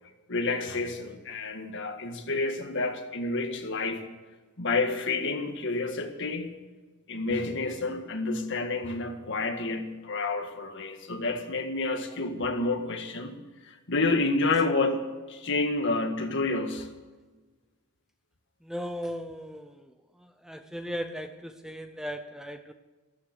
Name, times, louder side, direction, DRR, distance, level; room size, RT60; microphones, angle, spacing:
voice 1, 0.3-4.0 4.6-6.5 7.1-13.4 13.6-16.9, left 3 dB, 55° left, 5 dB, 1.8 m, -29 dB
voice 2, 18.7-19.7 20.4-22.7, equal, ahead, 8 dB, 0.6 m, -36 dB
15.0 x 13.0 x 6.7 m, 1.3 s
head